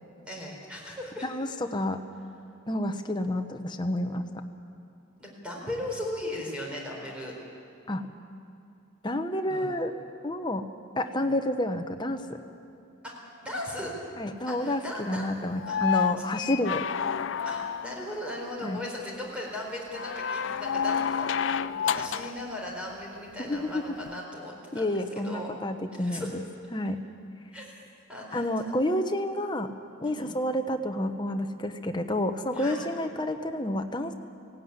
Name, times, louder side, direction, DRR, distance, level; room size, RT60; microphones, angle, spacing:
voice 1, 0.3-1.3 5.2-7.3 9.5-9.7 11.2-11.3 13.0-13.9 14.5-15.2 15.7-16.3 17.4-25.5 26.0-26.3 27.5-27.7 28.1-28.7 30.0-30.3 32.5-32.8, left 1 dB, 5° right, -3 dB, 4.2 m, -38 dB
voice 2, 1.2-2.0 2.7-4.2 7.9-8.1 9.0-9.9 10.2-10.6 11.0-12.4 14.2-16.9 18.6-18.8 23.4-23.8 24.7-26.4 26.7-27.0 28.3-29.7 30.0-34.1, left 1 dB, 20° left, 6 dB, 1.0 m, -29 dB
sound 1, 15.6-18.1 19.9-22.4 24.1-24.2, left 7 dB, 60° left, 0.4 m, -29 dB
17.0 x 17.0 x 9.7 m, 2.6 s
head